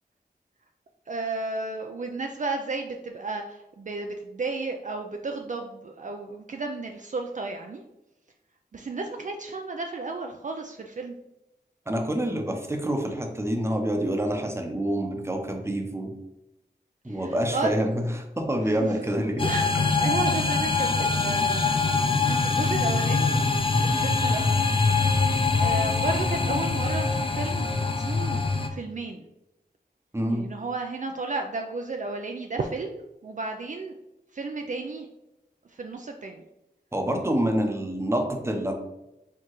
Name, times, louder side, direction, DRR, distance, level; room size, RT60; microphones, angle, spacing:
voice 1, 1.1-7.8 8.7-11.2 17.0-17.7 18.7-21.7 22.3-24.4 25.5-28.4 28.7-29.2 30.3-34.0 34.3-35.1 35.7-36.4, right 3 dB, 50° right, 3 dB, 0.4 m, -33 dB
voice 2, 11.9-16.1 17.0-19.4 19.7-19.8 30.1-30.4 36.9-38.7, right 1 dB, 15° right, 3 dB, 0.7 m, -27 dB
sound 1, 19.4-28.7, left 4 dB, 30° left, 0.5 m, -24 dB
4.6 x 3.5 x 3.0 m, 0.92 s
wide cardioid pair, 70°, 17 cm